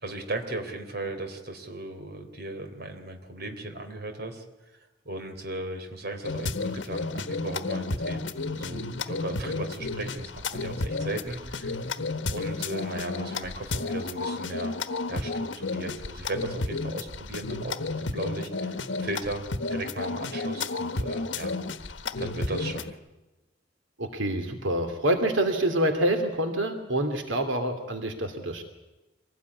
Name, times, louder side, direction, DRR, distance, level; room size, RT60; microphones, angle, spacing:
voice 1, 0.0-4.4 5.0-11.8 12.3-14.8 15.1-19.4 19.7-21.6 22.2-23.0, right 2 dB, 55° right, 6 dB, 3.5 m, -36 dB
sound 1, 6.2-22.9, left 3 dB, 70° left, 1.3 m, -32 dB
voice 2, 24.0-28.6, right 1 dB, 90° right, 6 dB, 2.7 m, -26 dB
25.5 x 18.5 x 9.6 m, 1.1 s
head